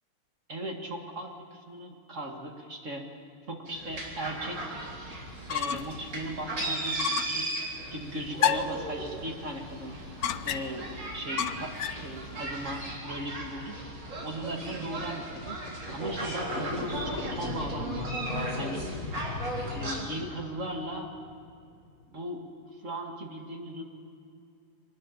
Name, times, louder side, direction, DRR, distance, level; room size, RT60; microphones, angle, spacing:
voice 1, 0.5-3.1 3.5-4.6 5.5-7.5 7.9-9.9 10.4-13.8 14.2-15.6 15.9-18.1 18.6-18.9 19.6-21.1 22.1-22.5 22.7-23.8, right 1 dB, 35° right, 2 dB, 2.2 m, -37 dB
sound 1, 3.7-20.0, right 2 dB, 55° right, 4.3 m, -37 dB
sound 2, 5.3-6.0 6.4-6.5 7.0-7.4 8.4-8.8 10.2-10.9 11.4-12.1, left 9 dB, 75° left, 0.8 m, -30 dB
sound 3, 16.3-21.6, left 4 dB, 40° left, 1.5 m, -38 dB
24.0 x 19.5 x 7.2 m, 2.4 s
omnidirectional pair, 2.4 m